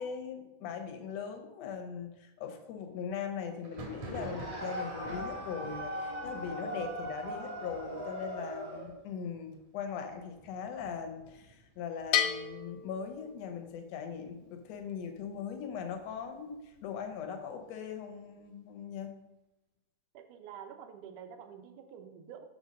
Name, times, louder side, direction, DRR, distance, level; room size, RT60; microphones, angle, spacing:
voice 1, 0.0-19.2, left 7 dB, 65° left, 5 dB, 1.8 m, -40 dB
Thunder, 3.6-13.1 13.4-14.1 14.3-15.3 15.7-17.4, right 3 dB, 60° right, 2.4 m, -50 dB
sound 1, 4.1-9.0, equal, 10° right, 1.5 m, -39 dB
Bell, 12.1-13.8, left 9 dB, 85° left, 2.2 m, -33 dB
voice 2, 20.1-22.5, right 8 dB, 75° right, 6 dB, 2.3 m, -48 dB
6.9 x 5.4 x 5.1 m, 0.98 s
omnidirectional pair, 3.7 m